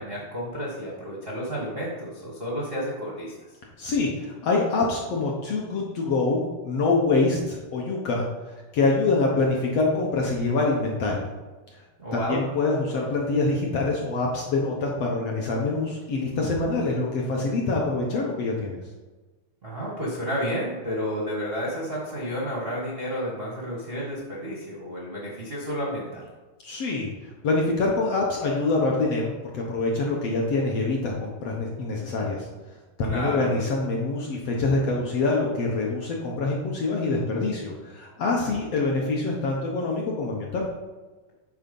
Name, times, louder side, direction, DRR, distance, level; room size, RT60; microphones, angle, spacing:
voice 1, 0.0-3.3 12.0-12.4 19.6-26.3 33.0-33.5, equal, 60° right, -4 dB, 0.6 m, -31 dB
voice 2, 3.8-11.3 11.7-11.8 12.1-18.8 26.6-32.5 33.0-40.7, left 3 dB, 65° left, -2 dB, 1.6 m, -25 dB
9.3 x 4.3 x 5.3 m, 1.2 s
omnidirectional pair, 3.9 m